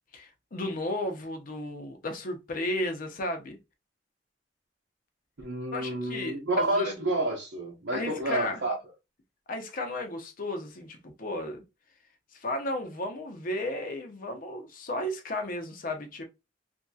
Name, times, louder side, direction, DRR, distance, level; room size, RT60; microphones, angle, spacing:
voice 1, 0.1-3.6 5.7-7.0 7.9-8.6 9.5-11.6 12.3-16.2, left 1 dB, 50° left, 0.6 m, -34 dB
voice 2, 5.4-8.7, right 2 dB, 80° right, 0.8 m, -29 dB
2.8 x 2.6 x 2.3 m
head